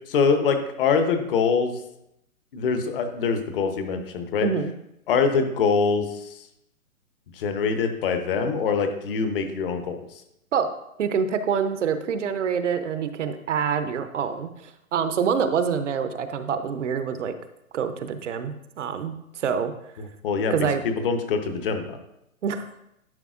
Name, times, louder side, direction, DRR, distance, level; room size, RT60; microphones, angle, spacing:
voice 1, 0.1-1.7 2.5-4.5 5.1-6.1 7.4-10.0 20.2-20.5 20.8-22.0, left 5 dB, 40° left, 6 dB, 1.0 m, -24 dB
voice 2, 4.4-4.7 10.5-10.7 11.0-17.3 17.7-19.7 20.5-20.8 22.4-22.7, right 6 dB, 55° right, 10 dB, 0.7 m, -26 dB
11.0 x 5.3 x 2.5 m, 0.83 s
hypercardioid pair, 135°, 43 cm